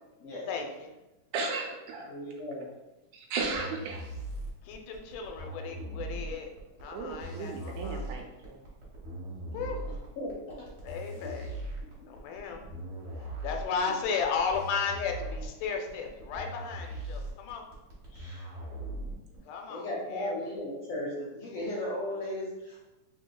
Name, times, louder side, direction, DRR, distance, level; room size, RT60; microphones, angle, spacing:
voice 1, 0.5-0.9 4.6-6.5 6.8-8.1 9.5-9.9 10.8-11.5 12.0-12.6 13.4-17.6 19.5-20.3, left 5 dB, 85° left, 3 dB, 2.1 m, -34 dB
voice 2, 1.3-2.1 3.1-4.0 6.9-8.6, right 4 dB, 80° right, 2 dB, 1.9 m, -35 dB
voice 3, 2.1-2.7 10.2-10.3 13.6-13.9 18.1-18.4 19.7-23.0, left 1 dB, 70° left, -5 dB, 1.5 m, -36 dB
sound 1, 3.4-19.4, right 1 dB, 55° right, 1.1 m, -40 dB
5.1 x 3.3 x 2.2 m, 1.0 s
omnidirectional pair, 3.5 m